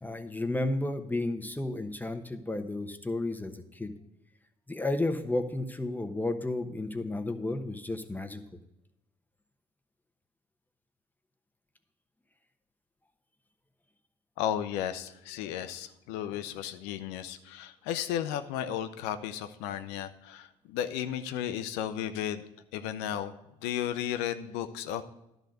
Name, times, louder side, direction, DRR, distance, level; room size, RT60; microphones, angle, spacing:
voice 1, 0.0-3.9 4.7-8.4, left 2 dB, 10° left, 7 dB, 1.0 m, -32 dB
voice 2, 14.4-22.4 22.7-23.3 23.6-25.0, left 10 dB, 85° left, 11 dB, 0.6 m, -34 dB
11.5 x 4.0 x 7.8 m, 0.89 s
hypercardioid pair, 55°, 17 cm